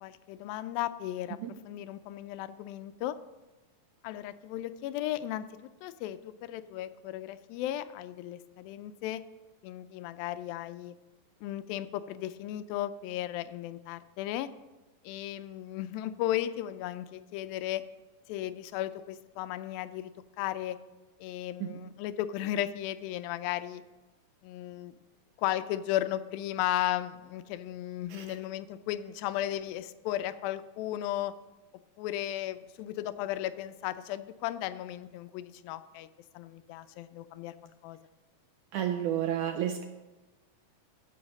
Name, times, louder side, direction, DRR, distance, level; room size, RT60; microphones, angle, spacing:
voice 1, 0.0-1.4 1.6-3.2 4.0-9.2 9.6-11.0 11.4-14.5 15.0-17.8 18.3-20.8 21.2-23.8 24.4-25.0 25.4-31.4 32.0-36.1 36.3-38.0, left 13 dB, 90° left, 12 dB, 2.4 m, -35 dB
voice 2, 38.7-39.8, right 10 dB, 80° right, 6 dB, 1.8 m, -30 dB
15.0 x 5.8 x 5.2 m, 1.1 s
omnidirectional pair, 4.1 m